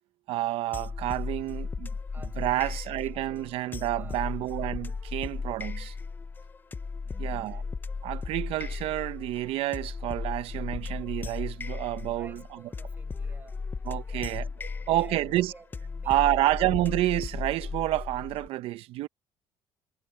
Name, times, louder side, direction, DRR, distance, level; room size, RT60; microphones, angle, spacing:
voice 1, 0.3-1.9 2.4-5.9 7.2-7.6 8.0-12.4 13.8-14.5 14.9-15.5 16.1-19.1, right 15 dB, 70° right, 0.9 m, -29 dB
sound 1, 0.7-18.5, left 4 dB, 20° left, 0.6 m, -36 dB
voice 2, 2.1-3.0 3.9-4.5 7.0-7.7 12.0-16.7, right 4 dB, 20° right, 5.9 m, -53 dB
cardioid pair, 135°, 10 cm